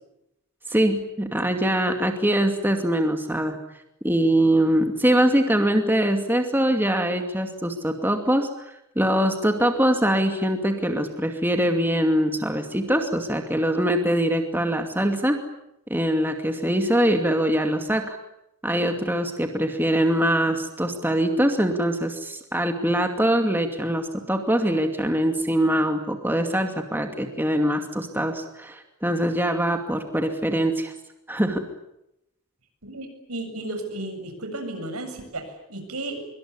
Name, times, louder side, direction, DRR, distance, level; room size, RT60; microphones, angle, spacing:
voice 1, 0.7-3.6 4.0-15.4 15.9-18.2 18.6-30.9 31.3-31.6, right 1 dB, 10° right, 5 dB, 2.4 m, -23 dB
voice 2, 32.8-36.2, right 2 dB, 85° right, 7 dB, 7.4 m, -34 dB
25.5 x 23.5 x 9.8 m, 0.84 s
head